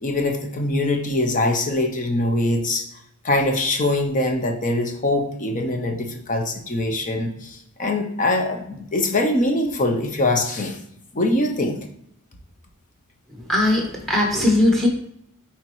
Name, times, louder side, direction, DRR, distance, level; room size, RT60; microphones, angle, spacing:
voice 1, 0.0-2.9 3.2-10.8 11.1-11.8, left 2 dB, 35° left, 4 dB, 0.8 m, -23 dB
voice 2, 13.3-14.9, left 1 dB, ahead, 1 dB, 1.2 m, -19 dB
9.5 x 4.3 x 3.1 m, 0.75 s
head